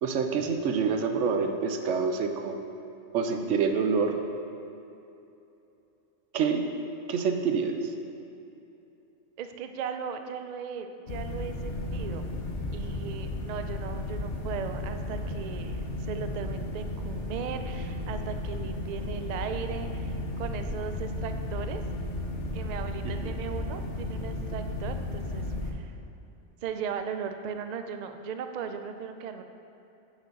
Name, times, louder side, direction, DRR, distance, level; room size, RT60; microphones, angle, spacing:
voice 1, 0.0-2.5 3.1-4.2 6.3-6.7 7.1-7.8 23.0-23.4, right 5 dB, 90° right, 5 dB, 1.0 m, -27 dB
voice 2, 9.4-12.3 12.7-20.1 20.4-21.8 22.5-25.9 26.6-29.4, right 6 dB, 65° right, 7 dB, 0.4 m, -37 dB
sound 1, 11.1-25.7, left 2 dB, 75° left, 1.1 m, -34 dB
6.2 x 5.2 x 6.6 m, 2.8 s
omnidirectional pair, 1.2 m